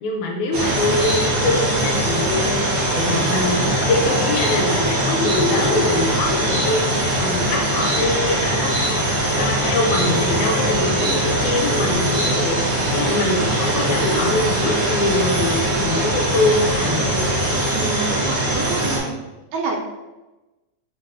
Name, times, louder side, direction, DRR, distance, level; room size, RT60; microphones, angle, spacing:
voice 1, 0.0-2.5 2.9-6.8 7.1-12.6 12.9-17.3, left 2 dB, 80° left, 1 dB, 1.9 m, -23 dB
sound 1, 0.5-19.0, right 1 dB, 70° right, 0.9 m, -21 dB
voice 2, 17.7-19.1 19.5-19.8, right 4 dB, 90° right, 1 dB, 2.2 m, -27 dB
4.6 x 3.3 x 2.5 m, 1.1 s
omnidirectional pair, 3.6 m